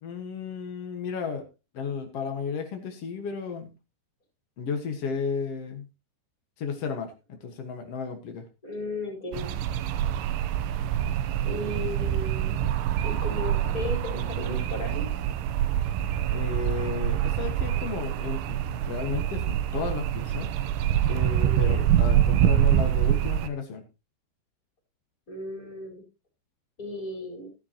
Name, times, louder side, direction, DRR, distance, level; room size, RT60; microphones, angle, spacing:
voice 1, 0.0-1.4 1.7-3.7 4.6-5.9 6.6-8.4 16.3-20.5 21.1-23.8, left 6 dB, 85° left, 5 dB, 1.3 m, -33 dB
voice 2, 8.6-9.5 11.4-12.5 13.0-15.1 21.4-21.8 25.3-26.0 26.8-27.5, left 2 dB, 20° left, 1 dB, 4.7 m, -35 dB
sound 1, 9.3-23.5, right 11 dB, 90° right, 3.3 m, -25 dB
13.5 x 12.0 x 2.9 m, 0.28 s
omnidirectional pair, 5.3 m